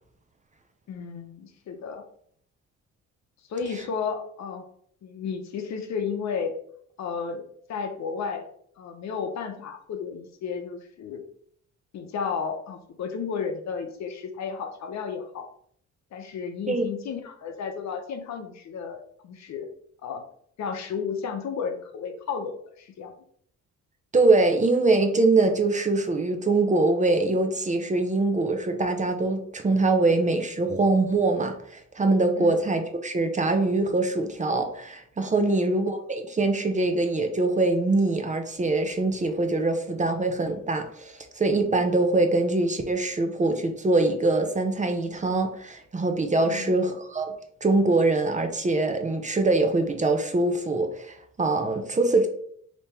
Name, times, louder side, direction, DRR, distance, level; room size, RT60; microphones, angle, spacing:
voice 1, 0.9-2.0 3.5-4.6 5.0-6.5 7.0-7.4 7.7-8.5 8.8-11.2 11.9-15.5 16.1-19.7 20.0-20.2 20.6-23.1 32.4-32.5 35.5-35.7 46.4-46.8, left 6 dB, 65° left, 6 dB, 0.8 m, -33 dB
voice 2, 24.1-47.3 47.6-52.3, right 2 dB, 25° right, 6 dB, 0.7 m, -23 dB
3.5 x 3.0 x 4.3 m, 0.64 s
cardioid pair, 90°, 30 cm